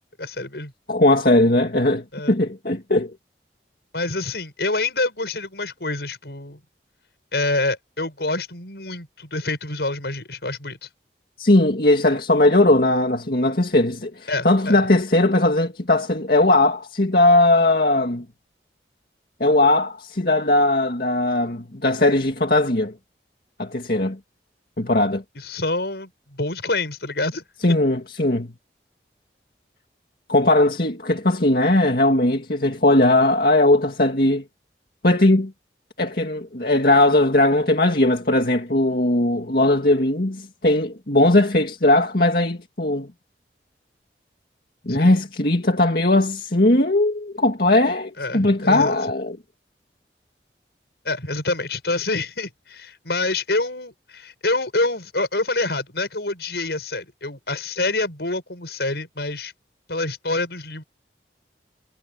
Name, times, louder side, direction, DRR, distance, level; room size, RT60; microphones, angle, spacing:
voice 1, 0.2-0.7 2.1-2.4 3.9-6.6 7.3-10.9 14.3-14.8 25.3-27.8 44.9-45.3 48.2-49.0 51.0-59.5 59.9-60.8, left 2 dB, 70° left, 5.9 m, -27 dB
voice 2, 0.9-3.1 11.4-18.2 19.4-22.9 23.6-24.2 24.8-25.2 27.6-28.5 30.3-34.4 35.0-35.5 36.0-43.1 44.9-49.4, left 2 dB, 55° left, 2.2 m, -19 dB
head